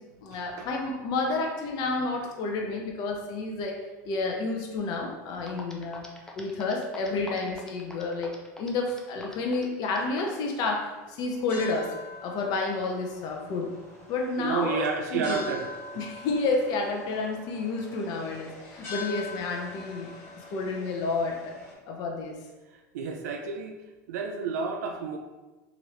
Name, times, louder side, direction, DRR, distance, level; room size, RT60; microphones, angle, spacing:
voice 1, 0.2-3.7 4.0-6.0 6.4-11.9 12.2-13.7 14.1-15.5 16.0-20.1 20.5-21.5 21.9-22.4, left 3 dB, 50° left, 1 dB, 0.6 m, -30 dB
sound 1, 5.1-5.2 5.5-10.4, left 1 dB, 5° left, 0.5 m, -44 dB
sound 2, 10.9-21.7, left 3 dB, 25° left, 1.4 m, -44 dB
voice 2, 14.4-15.7 22.9-23.8 24.1-25.2, right 5 dB, 80° right, 3 dB, 0.4 m, -30 dB
3.0 x 2.5 x 3.1 m, 1.2 s
hypercardioid pair, 105°, 9 cm